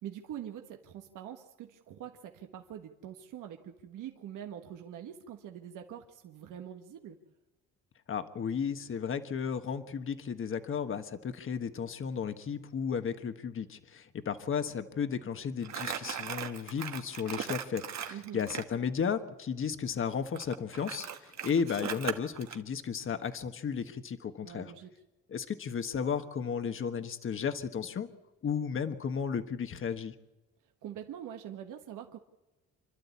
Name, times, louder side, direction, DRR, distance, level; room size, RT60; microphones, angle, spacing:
voice 1, 0.0-7.2 18.1-18.4 24.4-24.9 30.8-32.2, right 10 dB, 80° right, 4 dB, 1.5 m, -44 dB
voice 2, 8.1-24.7 25.3-28.1 28.4-30.1, left 6 dB, 40° left, 9 dB, 1.4 m, -34 dB
Crumpling crinkling, 15.6-18.7 20.3-22.6, right 8 dB, 60° right, 1.6 m, -38 dB
27.5 x 12.0 x 8.4 m, 1.1 s
cardioid pair, 110°, 31 cm